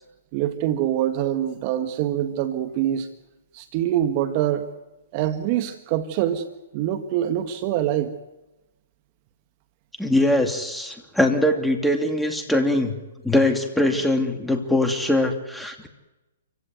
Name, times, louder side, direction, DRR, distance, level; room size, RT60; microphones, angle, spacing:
voice 1, 0.3-3.1 3.5-4.7 5.1-6.4 6.7-8.2, right 11 dB, 40° right, 9 dB, 1.6 m, -24 dB
voice 2, 10.0-13.0 13.2-15.9, left 1 dB, ahead, 4 dB, 2.6 m, -22 dB
28.0 x 16.0 x 9.4 m, 1.1 s
hypercardioid pair, 125°, 0 cm